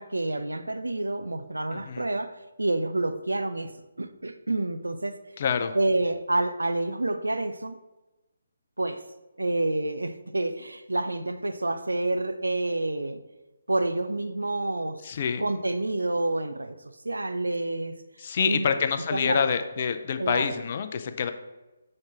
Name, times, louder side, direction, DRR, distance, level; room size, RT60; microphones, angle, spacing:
voice 1, 0.0-3.7 4.0-5.2 5.7-7.8 8.8-9.0 9.4-13.2 13.7-15.0 15.4-16.8 17.0-18.0 18.4-18.7 19.1-19.5 20.2-20.5, right 2 dB, 80° right, 10 dB, 0.5 m, -28 dB
voice 2, 1.7-2.0 5.4-5.7 15.0-15.4 18.2-21.3, left 6 dB, 40° left, 9 dB, 0.5 m, -27 dB
5.8 x 3.2 x 5.7 m, 1.1 s
figure-of-eight pair, 140°, 0 cm